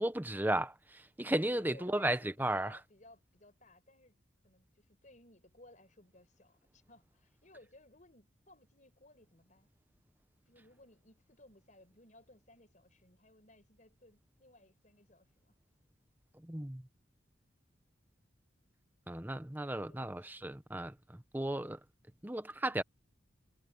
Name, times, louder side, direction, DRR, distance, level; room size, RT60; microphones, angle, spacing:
voice 1, 0.0-2.8 16.4-16.8 19.1-21.8 22.2-22.8, right 1 dB, 10° right, 0.8 m, -35 dB
voice 2, 1.3-4.2 4.4-9.7 10.5-15.5 19.6-20.2, left 2 dB, 40° left, 5.3 m, -61 dB
head